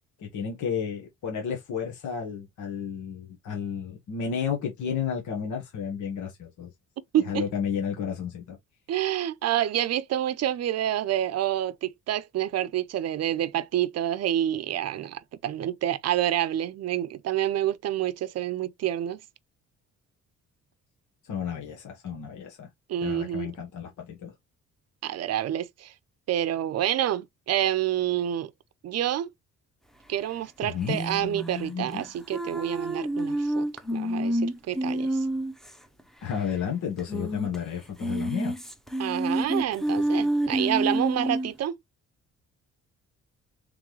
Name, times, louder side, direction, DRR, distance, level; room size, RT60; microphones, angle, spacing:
voice 1, 0.2-6.7 7.1-8.6 21.2-22.7 23.0-24.3 30.6-31.0 36.2-38.5, left 7 dB, 75° left, 1.4 m, -32 dB
voice 2, 7.1-7.4 8.9-19.2 22.9-23.5 25.0-25.9 26.3-28.5 28.8-29.3 30.1-35.2 39.0-41.8, right 11 dB, 55° right, 0.6 m, -28 dB
sound 1, 30.8-35.7 36.0-36.1 36.3-36.4 37.0-37.6 37.9-41.5, right 1 dB, ahead, 0.8 m, -28 dB
3.7 x 3.3 x 3.1 m
cardioid pair, 90°, 30 cm